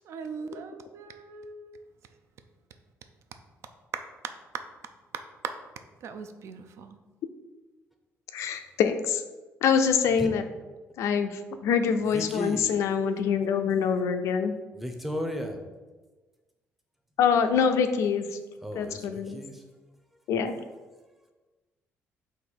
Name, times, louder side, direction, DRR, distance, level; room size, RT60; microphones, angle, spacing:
voice 1, 0.1-1.9 3.9-4.7 5.1-5.6 6.0-7.0, right 6 dB, 65° right, 0.4 m, -39 dB
voice 2, 8.3-9.2 9.6-10.4 11.0-14.5 17.2-18.3 18.8-19.4 20.3-20.6, left 6 dB, 75° left, 0.3 m, -25 dB
voice 3, 12.1-12.7 14.7-15.6 18.6-19.6 21.0-21.1, equal, 5° right, 0.6 m, -35 dB
3.9 x 2.5 x 4.4 m
cardioid pair, 105°, 5 cm